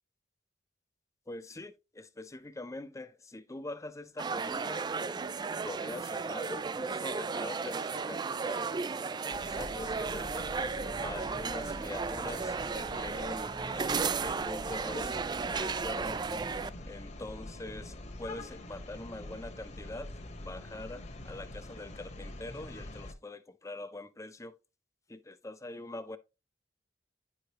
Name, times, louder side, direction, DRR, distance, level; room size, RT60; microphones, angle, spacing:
voice 1, 1.3-4.9 5.3-10.5 11.0-15.2 15.5-16.2 16.9-24.6 25.1-26.2, left 2 dB, 15° left, 0.6 m, -44 dB
sound 1, 4.2-16.7, right 5 dB, 25° right, 0.3 m, -34 dB
sound 2, 9.3-23.1, left 1 dB, 40° left, 1.1 m, -45 dB
10.0 x 4.9 x 2.9 m
head